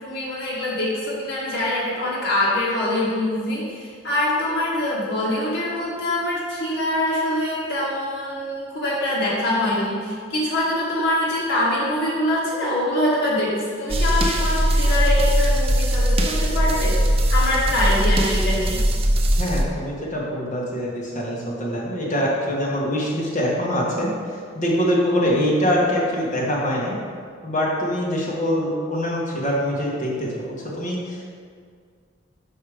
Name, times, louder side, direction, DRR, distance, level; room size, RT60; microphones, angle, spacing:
voice 1, 0.0-16.9 17.3-18.8, left 1 dB, 65° left, -7 dB, 1.7 m, -24 dB
sound 1, 13.9-19.6, equal, 30° right, 0.6 m, -20 dB
voice 2, 19.4-27.0 27.4-31.3, equal, 40° left, -5 dB, 1.6 m, -24 dB
5.7 x 5.5 x 5.0 m, 2.1 s
head